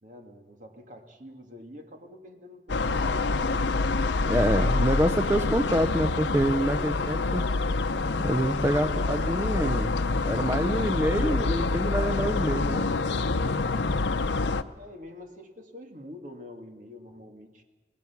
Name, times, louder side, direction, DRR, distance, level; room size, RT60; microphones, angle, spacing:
voice 1, 0.0-3.8 14.7-17.6, left 1 dB, 45° right, 4 dB, 2.3 m, -46 dB
sound 1, 2.7-14.6, left 3 dB, 85° left, 0.7 m, -26 dB
voice 2, 4.2-7.5 8.2-10.0 10.2-12.9 13.4-13.6, right 1 dB, 15° right, 8 dB, 0.6 m, -27 dB
25.5 x 19.0 x 6.0 m, 1.3 s
head